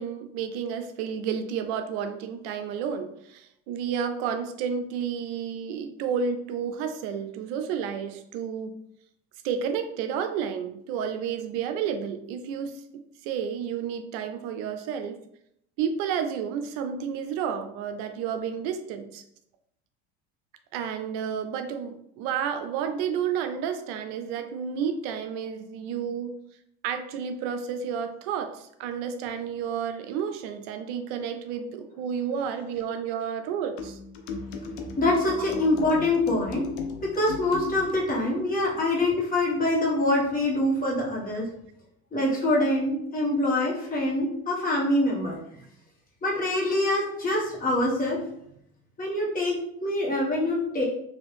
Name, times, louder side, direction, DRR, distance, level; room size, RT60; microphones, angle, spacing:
voice 1, 0.0-8.8 9.4-15.2 15.8-19.2 20.7-26.4 26.8-34.0 35.4-35.5, right 7 dB, 70° right, 7 dB, 0.5 m, -31 dB
sound 1, 33.8-38.0, left 4 dB, 80° left, 0.6 m, -36 dB
voice 2, 34.9-36.7 37.0-41.5 42.1-45.3 46.2-48.2 49.0-49.5 49.8-50.8, left 1 dB, 25° left, -5 dB, 1.4 m, -25 dB
2.9 x 2.6 x 3.3 m, 0.75 s
supercardioid pair, 110°, 32 cm